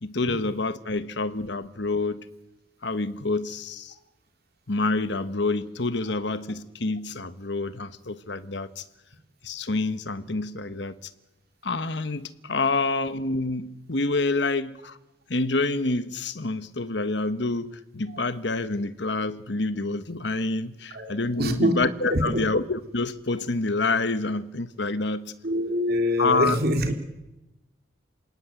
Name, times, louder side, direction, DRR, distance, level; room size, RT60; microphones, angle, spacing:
voice 1, 0.0-2.3 2.8-3.9 4.7-8.8 9.4-10.9 11.6-15.0 15.3-25.3 26.2-26.6, left 3 dB, 60° left, 1.3 m, -27 dB
voice 2, 21.4-21.7 22.1-22.4 25.4-26.9, equal, 50° right, 3.0 m, -24 dB
27.0 x 18.5 x 9.2 m
head